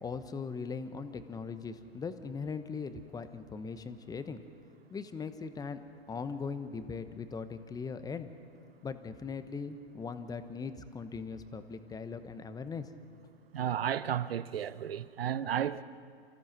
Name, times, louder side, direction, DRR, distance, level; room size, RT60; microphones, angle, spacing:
voice 1, 0.0-4.4 4.9-5.8 6.1-8.3 8.8-12.9, left 5 dB, 10° left, 1.1 m, -40 dB
voice 2, 13.5-15.8, right 10 dB, 70° right, 0.9 m, -33 dB
29.0 x 15.0 x 6.1 m
figure-of-eight pair, 105°, 31 cm